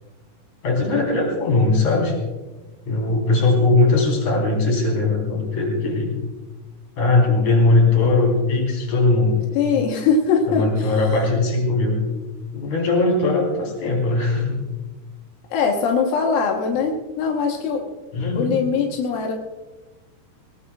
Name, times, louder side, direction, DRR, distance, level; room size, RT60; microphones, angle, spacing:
voice 1, 0.6-2.1 2.8-6.2 7.0-9.4 10.5-12.0 12.5-14.6 18.1-18.6, left 3 dB, 40° left, 0 dB, 5.0 m, -19 dB
voice 2, 9.6-11.1 15.5-17.8 18.4-19.3, left 5 dB, 70° left, 0 dB, 2.3 m, -21 dB
19.5 x 19.5 x 2.4 m, 1.2 s
omnidirectional pair, 5.5 m